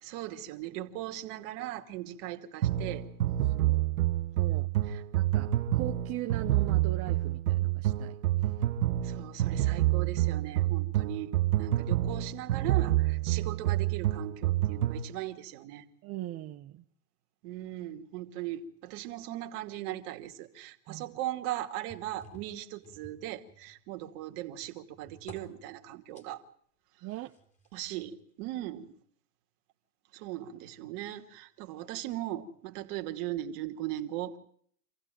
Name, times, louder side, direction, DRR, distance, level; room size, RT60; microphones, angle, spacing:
voice 1, 0.0-3.0 4.9-5.0 9.0-11.3 11.6-15.8 17.4-26.4 27.7-28.9 30.1-34.4, right 13 dB, 50° right, 6 dB, 2.5 m, -38 dB
sound 1, 2.6-15.1, right 14 dB, 70° right, 1.4 m, -28 dB
voice 2, 3.4-3.8 4.3-4.7 5.1-8.2 8.4-8.5 16.0-16.8 20.9-21.2 27.0-27.3, right 15 dB, 30° right, 5 dB, 0.9 m, -40 dB
sound 2, 21.9-23.9 24.3-26.3 27.3-28.2 28.9-29.0, right 1 dB, 15° left, 3.8 m, -54 dB
26.5 x 15.5 x 9.2 m, 0.63 s
hypercardioid pair, 110°, 45 cm